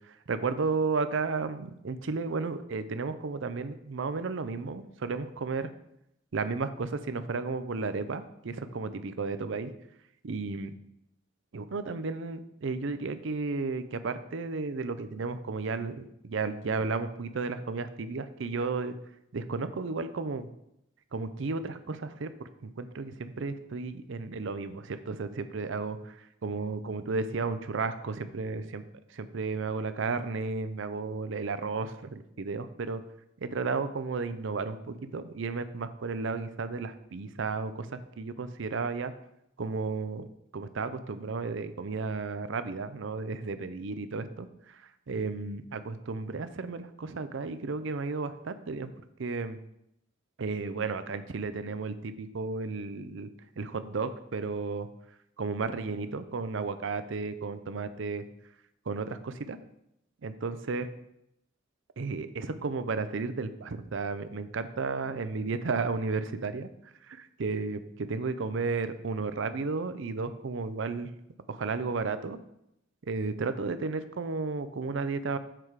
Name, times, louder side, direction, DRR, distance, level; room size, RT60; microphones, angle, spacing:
voice 1, 0.1-5.7 6.3-9.7 10.2-10.7 11.5-18.9 19.3-20.5 21.1-28.8 29.1-33.0 33.4-39.1 39.6-40.3 40.5-48.9 49.2-49.6 50.4-53.3 53.6-54.9 55.4-58.2 58.9-59.6 60.2-60.9 62.0-66.7 67.0-71.1 71.5-72.4 73.1-75.4, right 4 dB, 65° right, 11 dB, 0.5 m, -33 dB
7.6 x 4.9 x 4.6 m, 0.80 s
head